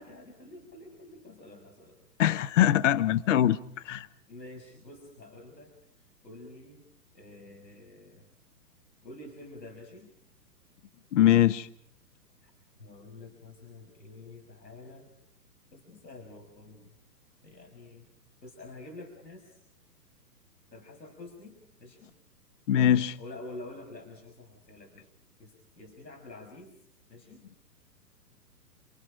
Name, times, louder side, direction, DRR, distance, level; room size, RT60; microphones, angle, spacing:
voice 1, 0.0-2.0 4.3-5.7 6.0-6.8 7.1-8.3 9.0-10.1 12.4-12.5 12.8-15.1 15.7-16.9 17.4-18.1 18.4-19.6 20.7-22.1 23.2-25.1 25.4-26.8 27.1-27.4, left 2 dB, 85° left, 6.1 m, -48 dB
voice 2, 2.2-3.6 3.8-4.1 11.1-11.7 22.7-23.2, left 11 dB, 45° left, 0.9 m, -22 dB
29.5 x 27.0 x 5.1 m
figure-of-eight pair, 120°, 49 cm